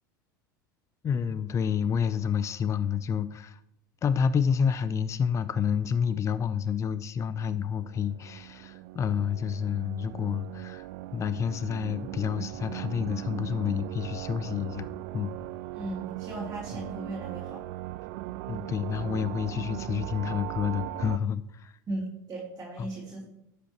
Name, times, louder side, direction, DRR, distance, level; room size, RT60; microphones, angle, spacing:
voice 1, 1.0-3.6 4.0-14.9 15.1-15.3 18.5-21.7 22.8-22.9, left 7 dB, 30° left, 15 dB, 0.5 m, -29 dB
sound 1, 7.8-21.2, right 17 dB, 60° right, 0.3 m, -39 dB
voice 2, 15.7-17.6 21.9-23.2, right 1 dB, 30° right, -5 dB, 3.2 m, -37 dB
11.5 x 8.2 x 3.0 m, 0.79 s
hypercardioid pair, 85°, 11 cm